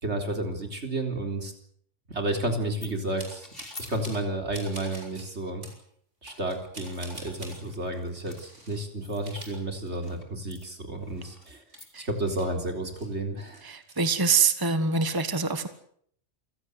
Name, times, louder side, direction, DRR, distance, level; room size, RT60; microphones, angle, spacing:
voice 1, 0.0-1.5 2.1-3.5 3.9-5.6 6.2-11.6 12.0-13.6, right 1 dB, 70° right, 5 dB, 4.2 m, -31 dB
sound 1, 2.8-2.9 3.4-3.9 6.8-8.5 9.0-9.5 9.9-10.2 10.5-11.9, left 2 dB, 55° left, 3.8 m, -48 dB
sound 2, 3.2-4.3 4.5-5.3 5.6-5.8 6.2-7.6 8.2-8.8 9.1-10.3 10.6-10.7 11.2-13.1 13.4-14.0, right 1 dB, 90° right, 6.6 m, -46 dB
voice 2, 13.6-15.7, right 5 dB, 20° right, 10 dB, 1.5 m, -25 dB
27.5 x 16.5 x 8.2 m, 0.66 s
omnidirectional pair, 1.2 m